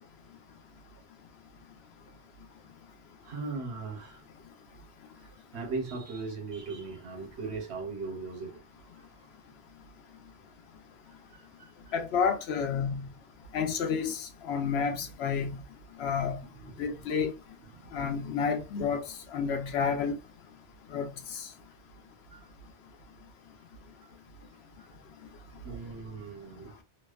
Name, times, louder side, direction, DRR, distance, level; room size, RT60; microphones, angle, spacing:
voice 1, 3.2-4.3 5.1-8.6 11.3-11.9 16.1-16.2 16.5-16.9 17.6-18.1 22.3-22.4 25.6-26.8, right 4 dB, 75° right, 1.1 m, -39 dB
voice 2, 11.9-13.1 13.5-15.6 16.0-16.4 16.8-17.3 17.9-20.2 20.9-21.5, left 6 dB, 75° left, 0.8 m, -30 dB
2.6 x 2.1 x 2.3 m
omnidirectional pair, 1.1 m